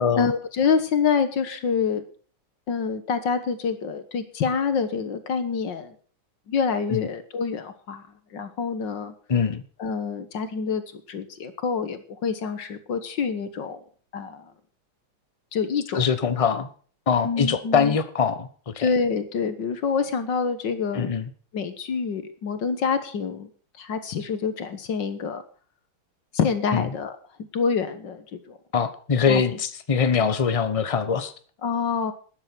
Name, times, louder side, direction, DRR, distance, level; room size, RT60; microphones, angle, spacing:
voice 1, 0.0-2.0 2.7-5.9 6.5-8.0 8.3-9.1 9.8-10.8 11.1-13.8 14.1-14.4 15.5-16.0 17.2-18.0 18.8-21.1 21.5-23.5 23.8-25.4 26.3-27.1 27.5-28.6 29.3-29.4 31.6-32.1, left 5 dB, 60° left, 1.9 m, -26 dB
voice 2, 9.3-9.6 15.9-16.7 17.1-18.9 20.9-21.3 26.7-26.8 28.7-31.3, left 6 dB, 25° left, 0.7 m, -23 dB
12.5 x 10.5 x 6.1 m
omnidirectional pair, 2.3 m